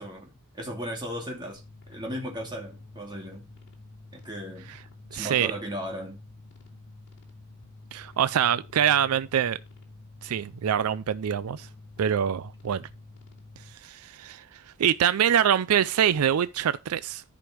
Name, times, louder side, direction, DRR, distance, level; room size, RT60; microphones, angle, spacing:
voice 1, 0.0-1.6 1.9-3.5 4.1-4.7 5.1-6.2, equal, 20° right, 2.8 m, -36 dB
sound 1, 1.5-13.7, left 2 dB, 55° left, 2.8 m, -49 dB
voice 2, 5.1-5.5 7.9-9.6 10.2-11.7 12.0-12.9 13.8-14.4 14.8-17.2, right 9 dB, 80° right, 0.4 m, -24 dB
13.5 x 5.2 x 3.1 m
head